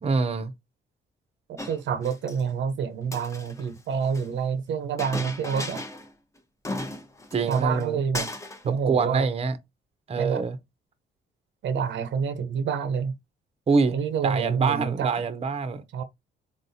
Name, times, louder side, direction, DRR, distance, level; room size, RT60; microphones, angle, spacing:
voice 1, 0.0-0.5 7.3-8.0 8.7-9.6 10.1-10.6 13.7-13.9 14.2-15.8, right 4 dB, 30° right, 0.6 m, -25 dB
Chink clink, 1.6-2.4 3.0-4.3 5.0-6.1 6.4-6.5 6.6-7.8 8.1-8.7, left 2 dB, 15° left, 0.8 m, -36 dB
voice 2, 1.6-5.8 7.5-8.3 8.6-9.3 10.1-10.4 11.6-13.1 13.9-15.1 15.9-16.0, right 6 dB, 70° right, 0.7 m, -27 dB
4.0 x 3.6 x 2.6 m
cardioid pair, 90°, 20 cm